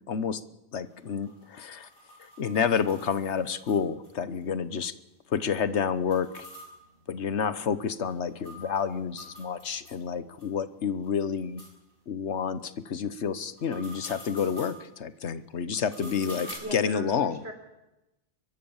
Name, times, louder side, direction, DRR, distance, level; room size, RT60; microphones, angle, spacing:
voice 1, 0.1-0.4 0.7-1.9 2.2-4.9 5.3-6.4 7.1-11.6 12.1-17.4, left 7 dB, 90° left, 14 dB, 1.3 m, -29 dB
sound 1, 0.9-4.1 4.4-4.5 4.8-4.9 6.0-10.0 10.4-10.5 11.0-11.1 11.6-11.7 13.4-14.8 15.7-16.5, equal, 55° left, 7.5 m, -47 dB
voice 2, 16.0-17.5, right 1 dB, 70° right, 5 dB, 4.3 m, -39 dB
24.0 x 22.5 x 7.2 m, 0.95 s
omnidirectional pair, 1.1 m